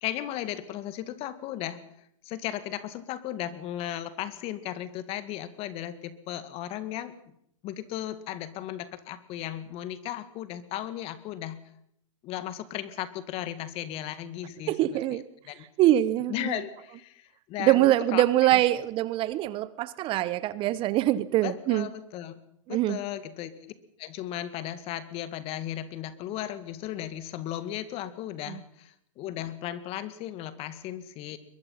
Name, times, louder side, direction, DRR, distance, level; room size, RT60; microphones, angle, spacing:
voice 1, 0.0-1.8 2.2-7.1 7.6-11.6 12.2-15.2 15.5-15.7 16.3-18.2 18.5-18.6 21.4-22.4 22.7-23.7 24.0-31.4, left 12 dB, 35° left, 14 dB, 1.9 m, -36 dB
voice 2, 14.7-15.2 15.8-16.6 17.6-21.9 22.7-23.0 28.5-28.6, right 14 dB, 30° right, 18 dB, 0.9 m, -24 dB
22.5 x 22.5 x 5.7 m, 0.72 s
hypercardioid pair, 120°, 17 cm